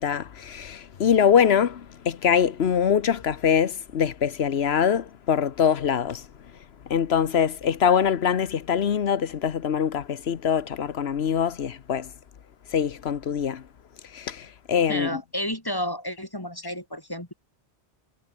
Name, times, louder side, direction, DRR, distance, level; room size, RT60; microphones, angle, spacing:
voice 1, 0.0-6.3 6.9-12.1 12.7-13.6 14.1-15.2, left 8 dB, 65° left, 1.2 m, -23 dB
voice 2, 14.9-17.3, equal, 20° left, 3.0 m, -31 dB
omnidirectional pair, 1.1 m